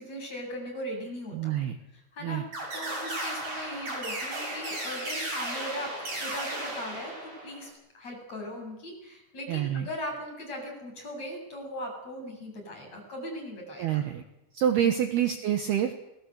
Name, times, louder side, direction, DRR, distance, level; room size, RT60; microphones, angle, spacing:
voice 1, 0.0-1.4 2.1-2.4 2.7-14.0 14.8-14.9, left 1 dB, 30° left, 2 dB, 8.8 m, -39 dB
voice 2, 1.3-1.7 2.2-2.4 9.5-9.9 13.8-14.2 14.5-15.9, right 10 dB, 65° right, 7 dB, 2.8 m, -27 dB
sound 1, 2.5-7.7, right 1 dB, 35° right, 8.4 m, -35 dB
29.5 x 21.5 x 8.2 m, 0.89 s
omnidirectional pair, 5.7 m